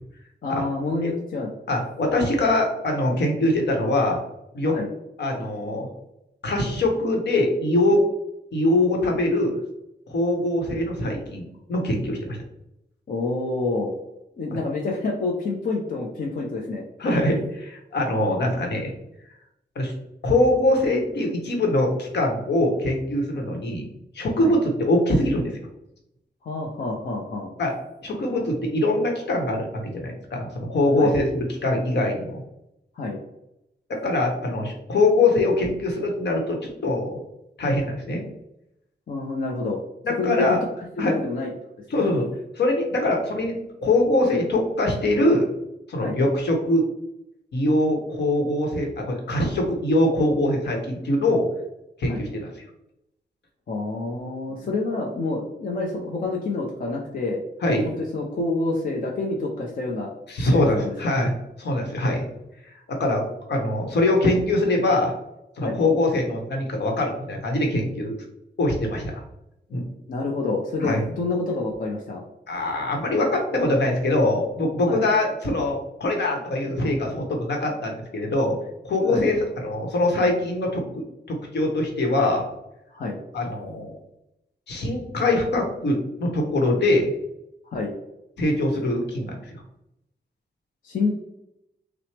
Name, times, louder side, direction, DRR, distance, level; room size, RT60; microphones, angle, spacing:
voice 1, 0.4-1.5 4.6-4.9 13.1-13.9 14.4-16.8 24.4-24.5 26.4-27.5 31.0-31.1 32.9-33.2 39.1-39.8 40.2-41.5 41.9-42.0 46.0-46.2 52.1-52.2 53.7-57.4 57.8-60.1 60.5-61.1 65.6-65.8 70.1-72.2 74.9-75.1 79.1-79.3 82.9-83.2 87.6-87.9 90.8-91.2, left 3 dB, 50° left, -1 dB, 0.6 m, -28 dB
voice 2, 1.7-4.2 4.5-4.8 5.2-5.9 6.4-8.0 8.5-9.6 10.1-12.4 17.0-18.9 19.8-19.9 20.2-23.9 24.1-25.5 27.6-27.7 28.0-32.4 33.9-37.2 37.6-38.2 40.0-40.6 41.0-41.2 41.9-42.3 42.6-43.5 43.8-45.5 45.9-46.9 47.5-51.5 52.0-52.5 54.5-54.7 57.6-57.9 60.3-61.3 61.6-62.3 62.9-63.2 63.5-65.1 65.6-68.1 68.6-69.2 69.7-69.8 70.8-71.0 72.5-78.6 78.8-82.4 83.3-83.9 84.7-87.1 88.4-89.6, left 1 dB, 75° left, 2 dB, 1.0 m, -23 dB
5.9 x 2.0 x 3.3 m, 0.86 s
wide cardioid pair, 180°, 18 cm